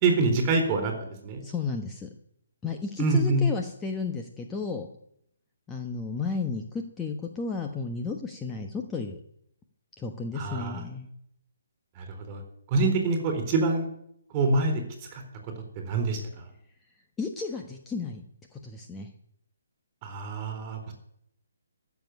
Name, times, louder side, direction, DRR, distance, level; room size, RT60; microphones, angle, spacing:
voice 1, 0.0-1.4 3.0-3.4 10.4-10.8 12.0-12.4 12.7-13.9 14.3-14.8 15.1-15.2 15.8-16.2 20.0-20.9, right 3 dB, 25° right, 5 dB, 3.9 m, -25 dB
voice 2, 1.4-2.1 2.6-4.9 5.7-9.2 10.0-11.1 17.2-18.2 18.5-19.1, left 4 dB, 10° left, 3 dB, 1.2 m, -33 dB
14.0 x 7.3 x 9.8 m, 0.72 s
figure-of-eight pair, 140°, 0 cm